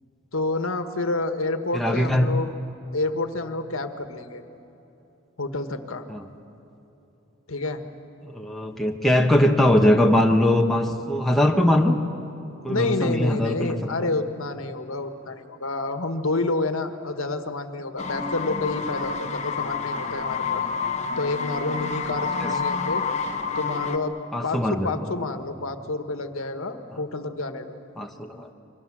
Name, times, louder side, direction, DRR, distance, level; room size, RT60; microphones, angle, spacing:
voice 1, 0.3-2.5 2.9-4.4 5.4-6.1 7.5-7.8 12.7-20.6 21.2-23.0 23.5-24.1 24.4-27.8, left 2 dB, 75° left, 8 dB, 1.5 m, -29 dB
voice 2, 1.7-2.3 6.1-6.2 8.2-12.0 12.6-13.7 14.0-14.1 22.4-22.5 24.3-24.9 28.0-28.5, left 1 dB, ahead, 1 dB, 1.2 m, -21 dB
sound 1, 18.0-24.0, left 5 dB, 30° left, 1.1 m, -28 dB
29.0 x 24.0 x 7.4 m, 3.0 s
head